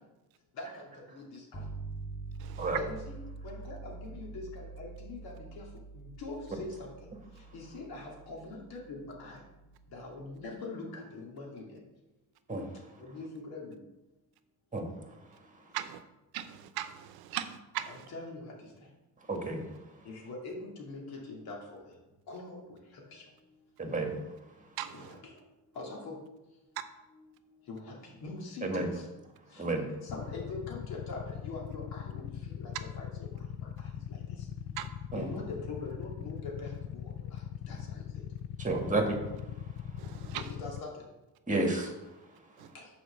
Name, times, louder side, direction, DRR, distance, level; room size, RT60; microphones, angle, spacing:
voice 1, 0.6-1.6 2.8-3.2 3.4-5.6 5.9-6.9 7.5-9.4 9.9-11.8 13.0-13.8 17.9-18.5 20.0-21.8 22.3-22.6 22.9-23.2 24.9-25.3 25.7-26.2 27.1-27.3 27.7-29.0 29.5-33.3 33.6-34.2 35.1-38.2 40.3-41.0 42.7-42.9, left 3 dB, 85° left, -1 dB, 2.5 m, -43 dB
sound 1, 1.5-10.5, right 3 dB, 20° left, 1.5 m, -46 dB
voice 2, 16.3-17.9 24.8-24.9 34.8-34.9 40.0-40.4, right 12 dB, 90° right, 11 dB, 0.7 m, -38 dB
voice 3, 19.3-19.8 23.8-24.2 28.6-28.9 29.6-29.9 35.1-35.3 38.6-39.2 39.7-39.9 41.5-41.9 42.3-42.4, right 2 dB, 20° right, 3 dB, 1.8 m, -31 dB
Motorcycle / Idling, 30.1-40.8, left 10 dB, 50° left, 0.4 m, -41 dB
6.7 x 4.9 x 6.4 m, 1.0 s
cardioid pair, 85°, 36 cm